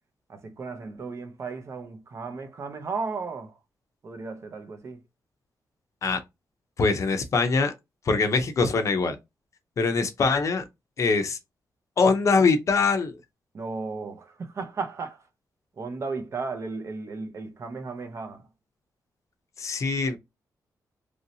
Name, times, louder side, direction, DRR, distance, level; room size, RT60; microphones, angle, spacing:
voice 1, 0.3-3.6 4.0-5.0 13.5-15.3 15.8-18.5, right 4 dB, 40° right, 0.6 m, -35 dB
voice 2, 6.8-7.7 8.1-9.2 9.8-10.6 11.0-11.4 12.0-13.2 19.6-20.2, left 4 dB, 45° left, 0.6 m, -23 dB
3.1 x 2.7 x 2.7 m
wide cardioid pair, 175°, 7 cm